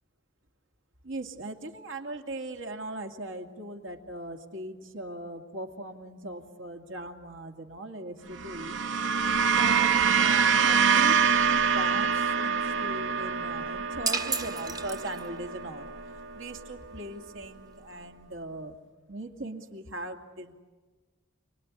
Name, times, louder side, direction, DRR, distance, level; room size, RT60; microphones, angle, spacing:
voice 1, 1.0-8.7 9.6-15.9 16.3-18.8 19.1-20.6, right 1 dB, 85° right, 3 dB, 2.5 m, -39 dB
sound 1, 8.3-16.8, right 6 dB, 65° right, 0.8 m, -26 dB
sound 2, 14.1-15.5, right 4 dB, 20° right, 0.8 m, -32 dB
29.0 x 20.5 x 9.8 m, 1.4 s
head